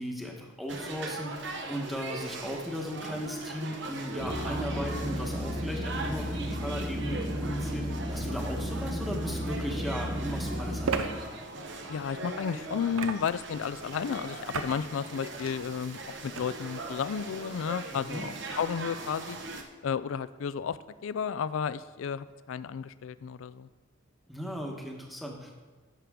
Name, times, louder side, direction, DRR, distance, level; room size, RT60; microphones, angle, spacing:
voice 1, 0.0-11.3 17.9-18.3 24.3-25.6, equal, ahead, 0 dB, 1.1 m, -37 dB
sound 1, 0.7-19.6, right 2 dB, 60° right, 0.9 m, -40 dB
sound 2, 4.2-11.0, equal, 25° right, 1.0 m, -34 dB
sound 3, 9.3-9.4 10.8-11.1 12.9-13.5 14.5-14.8 15.2-15.5 16.3-16.4, right 5 dB, 90° right, 0.6 m, -32 dB
voice 2, 11.9-19.4 19.8-23.7, left 7 dB, 70° left, 16 dB, 0.3 m, -33 dB
11.5 x 6.9 x 3.6 m, 1.3 s
head